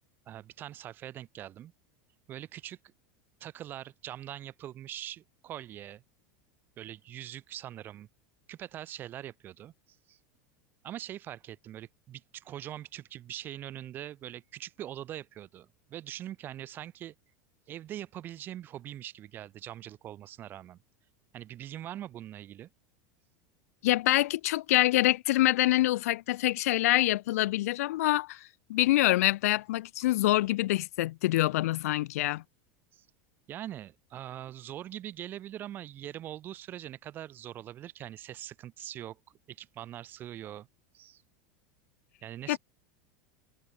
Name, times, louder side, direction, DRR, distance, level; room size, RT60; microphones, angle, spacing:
voice 1, 0.3-1.7 2.3-2.8 3.4-6.0 6.8-8.1 8.5-9.7 10.1-10.2 10.8-17.1 17.7-20.8 21.3-22.7 32.9-33.0 33.5-39.2 39.5-40.7 40.9-41.2 42.2-42.6, right 12 dB, 25° right, 3.0 m, -42 dB
voice 2, 23.8-32.4 42.5-42.6, left 16 dB, 80° left, 1.0 m, -26 dB
supercardioid pair, 175°, 8 cm